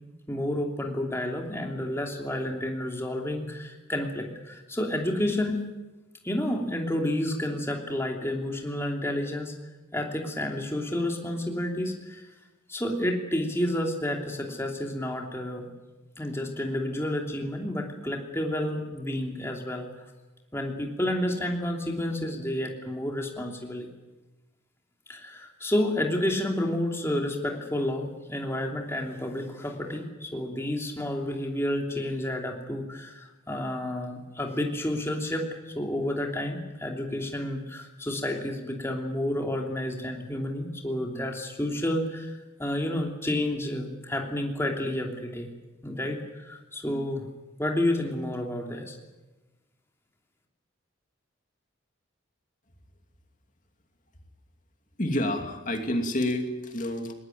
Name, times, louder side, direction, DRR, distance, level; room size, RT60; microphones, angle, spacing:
voice 1, 0.3-5.6 6.2-9.5 9.9-12.2 12.7-15.7 16.2-19.9 20.5-23.9 25.1-42.3 42.6-45.5 45.8-47.3 47.6-49.0, left 1 dB, 15° left, 1 dB, 3.0 m, -30 dB
voice 2, 55.0-57.1, left 1 dB, 40° left, 4 dB, 2.7 m, -28 dB
21.0 x 20.0 x 9.3 m, 1.1 s
head